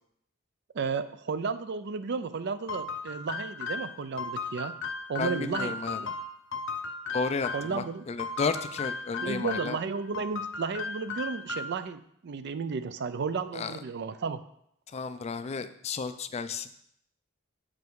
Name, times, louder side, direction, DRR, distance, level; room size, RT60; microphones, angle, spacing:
voice 1, 0.7-4.7 5.1-6.1 7.5-8.0 9.2-14.4, right 5 dB, 55° right, 12 dB, 0.4 m, -33 dB
sound 1, 2.7-7.8 8.2-9.8 10.1-11.9, left 4 dB, 65° left, 0.7 m, -36 dB
voice 2, 5.2-6.0 7.1-9.8 13.5-13.8 14.9-16.7, left 4 dB, 30° left, 11 dB, 0.4 m, -33 dB
7.0 x 5.1 x 4.7 m, 0.72 s
head